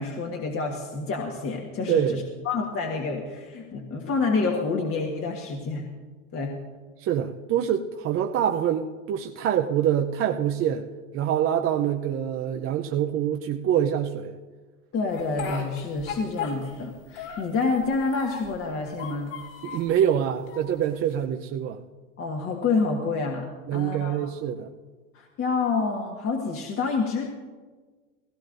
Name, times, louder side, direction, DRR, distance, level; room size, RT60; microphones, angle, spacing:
voice 1, 0.0-5.9 6.3-6.5 14.9-19.3 22.2-23.5 23.7-24.3 25.1-27.3, left 4 dB, 35° left, 1 dB, 1.5 m, -28 dB
voice 2, 1.9-2.2 7.0-10.8 11.1-14.3 19.6-21.8 23.7-24.7, right 10 dB, 35° right, 3 dB, 0.6 m, -25 dB
Speech, 15.1-16.9 17.2-18.6 18.9-19.9 20.5-21.2, left 5 dB, 65° left, 4.6 m, -36 dB
18.0 x 16.5 x 2.6 m, 1.4 s
hypercardioid pair, 100°, 40 cm